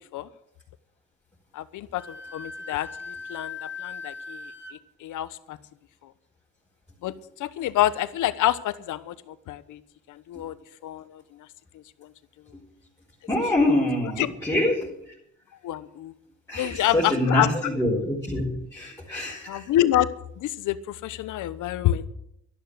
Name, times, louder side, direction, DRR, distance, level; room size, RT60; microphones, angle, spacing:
voice 1, 1.5-5.6 6.0-6.1 7.0-9.8 10.1-10.5 10.8-11.5 11.7-12.1 13.4-14.3 15.6-16.1 16.5-17.7 19.5-20.1 20.4-22.1, left 13 dB, 85° left, 14 dB, 1.1 m, -28 dB
Wind instrument woodwind instrument, 2.0-4.8, left 4 dB, 40° left, 1.8 m, -39 dB
voice 2, 13.3-15.1 16.5-19.7, left 1 dB, 10° left, -5 dB, 5.2 m, -25 dB
12.5 x 11.5 x 8.0 m, 0.76 s
cardioid pair, 90°, 30 cm